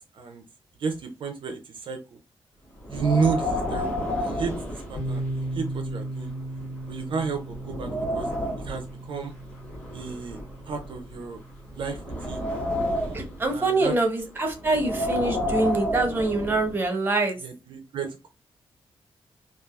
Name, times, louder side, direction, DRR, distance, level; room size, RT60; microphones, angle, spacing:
voice 1, 0.8-2.2 2.9-6.3 6.9-8.3 8.6-9.3 9.9-10.4 10.6-11.4 11.7-12.4 13.5-13.9 17.4-18.3, right 5 dB, 55° right, 5 dB, 0.4 m, -31 dB
Wind, 2.8-5.5 5.8-5.9 6.6-6.7 7.2-8.8 9.7-11.2 11.7-13.4 14.6-16.7, left 1 dB, 15° left, 0.9 m, -30 dB
sound 1, 5.0-12.6, right 1 dB, 35° left, 1.2 m, -37 dB
voice 2, 13.1-17.4, right 2 dB, 20° right, 3 dB, 0.6 m, -25 dB
3.3 x 2.3 x 2.3 m, 0.28 s
wide cardioid pair, 170°, 10 cm